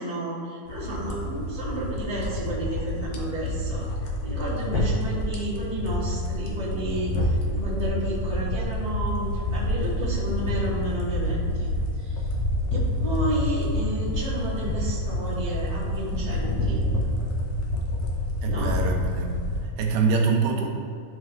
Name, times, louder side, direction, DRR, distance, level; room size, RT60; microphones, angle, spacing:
voice 1, 0.0-11.7 12.0-12.2 12.7-16.8 18.4-18.7, right 1 dB, 25° left, -10 dB, 0.8 m, -32 dB
sound 1, 0.7-19.7, left 1 dB, 80° left, 1.6 m, -28 dB
voice 2, 18.4-20.7, right 4 dB, 80° right, 0 dB, 3.2 m, -25 dB
14.0 x 5.2 x 3.2 m, 2.3 s
omnidirectional pair, 4.8 m